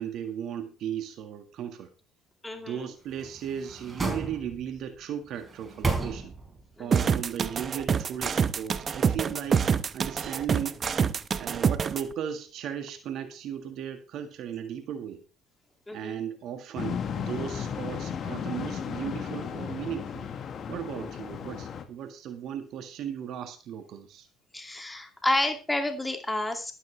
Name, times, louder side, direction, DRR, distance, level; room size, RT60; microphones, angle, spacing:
voice 1, 0.0-1.9 2.5-6.3 6.8-9.7 9.9-10.8 11.4-15.2 15.9-20.3 20.7-24.3, right 9 dB, 60° right, 7 dB, 1.9 m, -36 dB
voice 2, 2.4-2.9 6.8-7.1 15.9-16.2 24.5-26.7, left 1 dB, 10° left, 5 dB, 2.6 m, -30 dB
sound 1, 3.1-4.8 5.4-6.7 7.0-7.1, right 3 dB, 25° right, 4.6 m, -33 dB
sound 2, 6.9-12.0, right 6 dB, 40° right, 0.9 m, -26 dB
sound 3, 16.8-21.8, left 7 dB, 50° left, 1.9 m, -35 dB
12.5 x 12.5 x 3.4 m, 0.32 s
hypercardioid pair, 65°, 0 cm